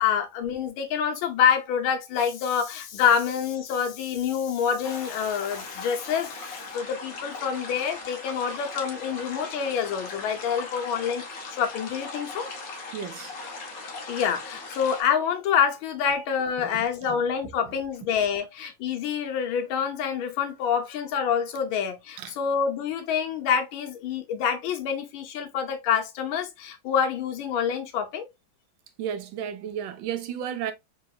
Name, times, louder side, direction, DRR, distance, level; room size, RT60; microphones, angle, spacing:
voice 1, 0.0-12.5 13.8-28.3, left 7 dB, 80° left, 1.5 m, -27 dB
sound 1, 4.8-15.0, left 3 dB, 60° left, 1.0 m, -39 dB
voice 2, 12.9-13.3 16.6-17.2 22.2-22.3 29.0-30.7, right 9 dB, 75° right, 1.2 m, -33 dB
3.8 x 2.8 x 2.3 m
omnidirectional pair, 2.2 m